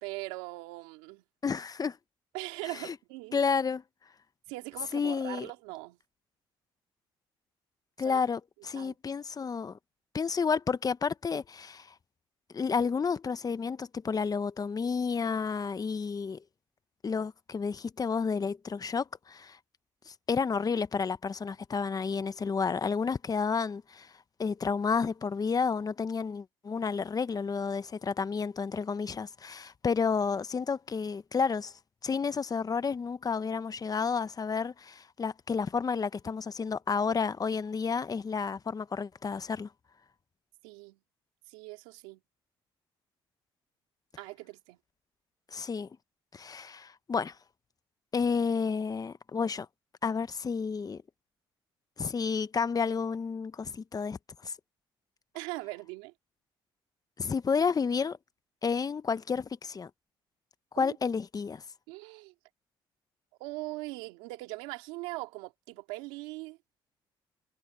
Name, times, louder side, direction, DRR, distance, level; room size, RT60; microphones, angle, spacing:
voice 1, 0.0-1.2 2.3-3.4 4.5-6.0 8.0-8.2 8.7-9.0 40.6-41.0 41.5-42.2 44.2-44.8 55.3-56.1 60.8-61.0 61.9-62.3 63.4-66.6, right 22 dB, 90° right, 2.5 m, -41 dB
voice 2, 1.4-2.0 2.8-3.0 3.3-3.8 4.9-5.5 8.0-9.8 10.1-11.9 12.5-16.4 17.0-19.6 20.1-24.1 24.4-31.7 32.0-39.7 45.5-45.9 46.3-47.3 48.1-49.7 50.0-51.0 52.0-54.5 57.2-58.2 58.6-59.9 60.7-61.6, left 5 dB, 35° left, 1.1 m, -31 dB
supercardioid pair, 65°, 11 cm